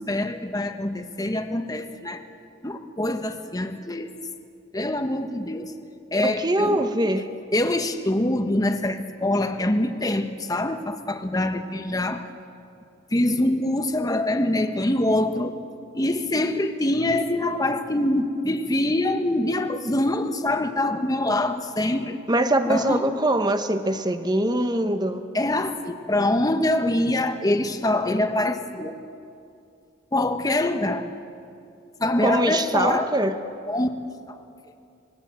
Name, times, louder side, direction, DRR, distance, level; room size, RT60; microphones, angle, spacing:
voice 1, 0.0-2.2 2.6-4.1 4.7-5.7 6.1-6.8 7.5-12.3 13.1-15.5 15.9-22.2 22.7-23.0 25.3-29.0 30.1-31.1 32.0-33.1 33.7-33.9 34.3-34.4, left 1 dB, 20° left, 7 dB, 1.2 m, -24 dB
voice 2, 6.2-7.3 22.3-25.2 32.2-33.3, right 1 dB, 20° right, 8 dB, 1.2 m, -23 dB
26.0 x 21.0 x 7.7 m, 2.5 s
head